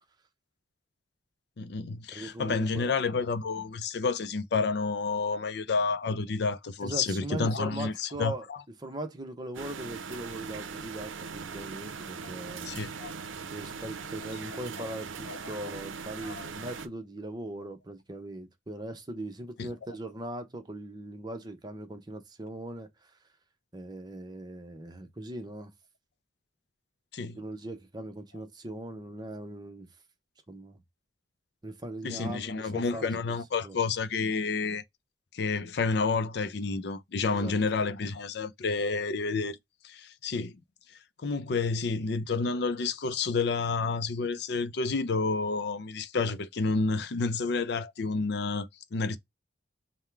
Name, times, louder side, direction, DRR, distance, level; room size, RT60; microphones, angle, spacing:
voice 1, 1.6-8.6 12.6-13.1 15.3-15.4 16.2-16.4 19.6-19.7 27.1-27.4 32.0-34.8 35.3-39.6 39.8-40.6 41.2-49.2, left 4 dB, 60° left, 0.5 m, -30 dB
voice 2, 2.1-2.9 6.8-8.4 8.8-12.8 13.4-23.2 23.7-25.7 27.3-29.9 30.5-30.8 31.6-33.3 33.6-33.7 37.2-37.6, right 1 dB, 20° right, 0.8 m, -40 dB
sound 1, 9.5-16.9, right 5 dB, 85° right, 0.6 m, -40 dB
3.7 x 2.2 x 4.4 m
head